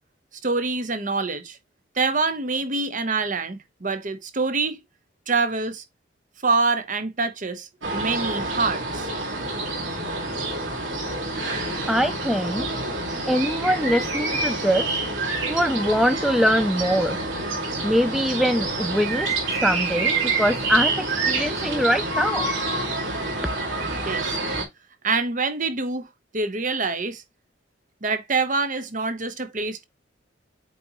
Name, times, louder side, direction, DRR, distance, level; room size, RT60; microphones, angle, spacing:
voice 1, 0.4-1.6 2.0-4.8 5.3-5.8 6.4-9.1 24.1-24.4 25.0-26.1 26.3-27.2 28.0-29.8, right 4 dB, 45° right, 0.9 m, -25 dB
sound 1, 7.8-24.6, right 2 dB, 90° right, 2.3 m, -27 dB
voice 2, 11.9-12.7 13.3-14.9 15.5-17.2 17.8-19.3 19.6-22.5, equal, ahead, 0.4 m, -23 dB
7.9 x 4.0 x 3.0 m
head